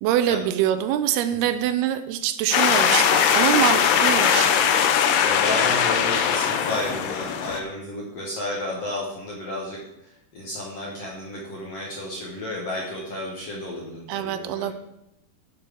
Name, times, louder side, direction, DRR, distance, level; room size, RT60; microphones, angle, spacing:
voice 1, 0.0-4.5 14.1-14.7, right 11 dB, 80° right, 10 dB, 2.5 m, -24 dB
sound 1, 2.5-7.6, left 8 dB, 85° left, 2.8 m, -20 dB
voice 2, 5.2-14.7, left 1 dB, 60° left, -3 dB, 1.7 m, -32 dB
10.5 x 4.8 x 6.1 m, 0.87 s
omnidirectional pair, 4.6 m